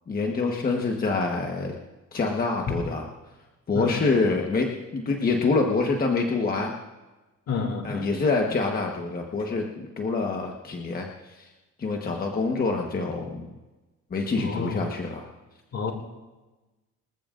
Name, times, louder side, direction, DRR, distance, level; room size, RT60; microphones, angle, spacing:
voice 1, 0.1-1.7 2.1-3.0 3.7-6.7 7.8-11.5 11.8-13.4 14.1-15.3, left 3 dB, 30° left, 1 dB, 1.2 m, -26 dB
voice 2, 3.7-4.4 7.5-8.1 14.4-14.8 15.7-15.9, left 5 dB, 55° left, 4 dB, 2.5 m, -30 dB
24.5 x 15.0 x 2.5 m, 1.2 s
cardioid pair, 150°, 30 cm